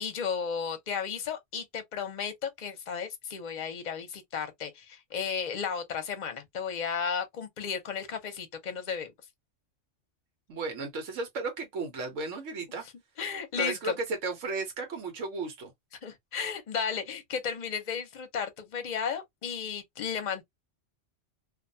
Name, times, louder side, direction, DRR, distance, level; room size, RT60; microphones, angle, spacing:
voice 1, 0.0-9.1 13.2-14.0 16.0-20.4, left 6 dB, 45° left, 0.7 m, -34 dB
voice 2, 10.5-12.8 13.6-15.7, right 3 dB, 90° right, 1.2 m, -34 dB
2.5 x 2.2 x 2.6 m
omnidirectional pair, 1.2 m